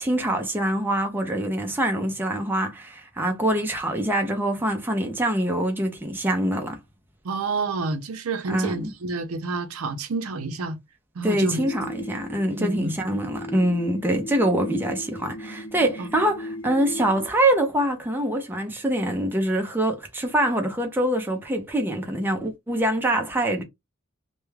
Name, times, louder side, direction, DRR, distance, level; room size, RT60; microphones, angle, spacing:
voice 1, 0.0-6.8 8.5-8.9 11.2-23.6, right 1 dB, 10° right, 0.5 m, -24 dB
voice 2, 7.2-10.8 11.2-11.7 12.6-12.9 16.0-16.1, right 3 dB, 75° right, 0.5 m, -29 dB
sound 1, 11.4-17.3, left 1 dB, 70° left, 0.9 m, -37 dB
2.2 x 2.2 x 3.1 m
head